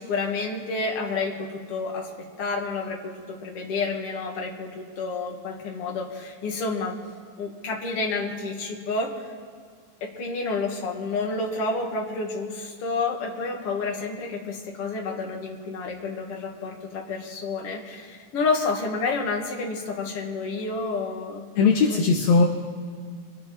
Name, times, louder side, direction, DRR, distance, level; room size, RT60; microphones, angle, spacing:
voice 1, 0.0-2.1 2.4-7.0 7.4-9.1 10.0-21.5 21.9-22.0, left 3 dB, 50° left, 0 dB, 2.7 m, -29 dB
voice 2, 21.6-22.4, left 4 dB, 65° left, 0 dB, 2.1 m, -19 dB
25.0 x 10.0 x 4.3 m, 2.1 s
omnidirectional pair, 3.6 m